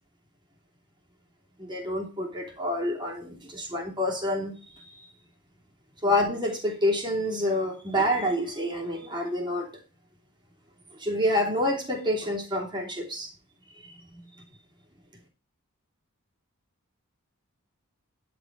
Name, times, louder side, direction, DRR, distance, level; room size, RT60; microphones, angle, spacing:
voice 1, 1.6-5.1 6.0-9.7 11.0-13.3 13.7-14.2, left 1 dB, 20° right, 0 dB, 3.0 m, -28 dB
10.5 x 5.2 x 6.1 m, 0.33 s
head